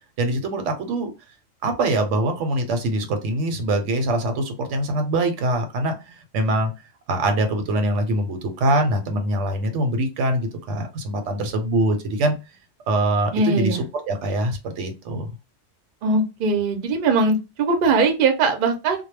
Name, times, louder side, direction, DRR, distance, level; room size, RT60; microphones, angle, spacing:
voice 1, 0.2-1.1 1.6-6.7 7.1-12.4 12.9-13.8 14.1-15.3, right 1 dB, 80° right, 6 dB, 0.9 m, -23 dB
voice 2, 13.3-13.8 16.0-19.0, right 3 dB, 55° right, 5 dB, 0.6 m, -20 dB
2.2 x 2.0 x 3.1 m, 0.28 s
omnidirectional pair, 1.2 m